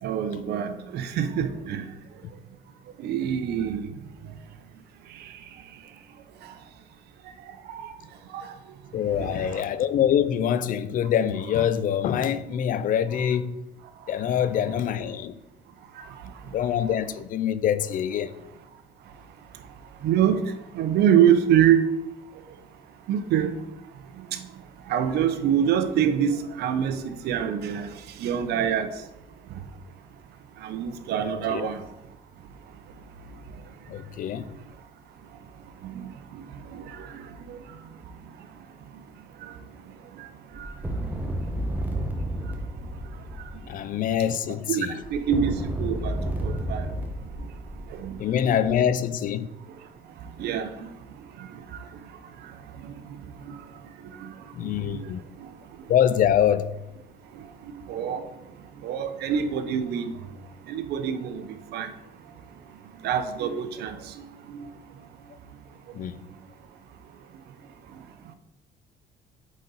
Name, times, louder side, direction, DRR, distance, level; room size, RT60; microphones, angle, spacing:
voice 1, 0.0-1.9 3.0-3.9 5.1-5.4 6.4-6.5 7.5-7.9 8.3-8.6 9.1-9.6 13.1-13.2 14.3-14.4 15.9-16.3 20.0-21.8 23.1-23.6 24.1-24.5 24.9-29.0 29.5-29.6 30.6-31.9 35.8-37.8 39.4-39.5 40.1-40.8 41.9-42.0 42.5-42.6 43.4-43.5 44.5-46.9 47.4-47.5 47.9-48.2 48.5-48.6 50.4-50.9 51.4-51.9 52.4-53.2 53.4-53.6 54.0-55.1 55.4-55.5 55.8-55.9 57.3-58.3 58.8-60.1 60.7-61.9 63.0-64.7 67.9-68.0, right 9 dB, 75° right, 0.8 m, -27 dB
voice 2, 8.9-13.6 14.1-15.3 16.5-18.3 31.5-31.7 33.9-34.4 43.7-44.9 48.2-49.5 54.6-55.2 55.9-56.7 65.9-66.2, left 9 dB, 55° left, 0.5 m, -24 dB
sound 1, 40.5-43.8 45.0-48.3, right 1 dB, 10° right, 0.9 m, -31 dB
8.3 x 4.1 x 4.0 m
cardioid pair, 110°, 17 cm